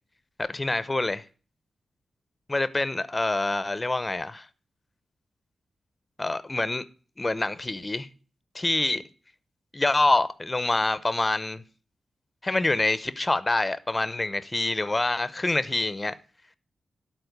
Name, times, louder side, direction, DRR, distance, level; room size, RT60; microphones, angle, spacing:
voice 1, 0.4-1.2 2.5-4.5 6.2-6.8 7.2-8.1 8.5-9.0 9.7-11.6 12.4-16.2, left 2 dB, 25° left, 0.7 m, -26 dB
12.0 x 4.4 x 8.0 m
cardioid pair, 90°, 0 cm